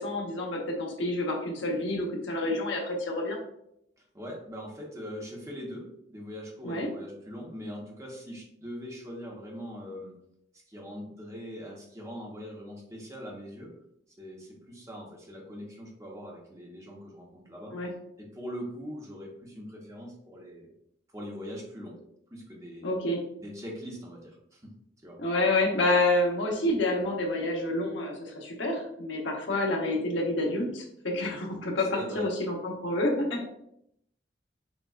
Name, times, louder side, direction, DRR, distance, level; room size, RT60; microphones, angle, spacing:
voice 1, 0.0-3.4 6.6-6.9 17.7-17.9 22.8-23.2 25.2-33.5, left 2 dB, 75° left, 0 dB, 0.9 m, -28 dB
voice 2, 4.0-10.1 10.5-13.7 14.2-17.9 18.2-20.7 21.1-22.0 22.3-22.9 23.4-24.7 25.0-25.2 31.9-32.3, equal, 15° right, -2 dB, 0.9 m, -41 dB
6.0 x 2.4 x 2.4 m, 0.75 s
head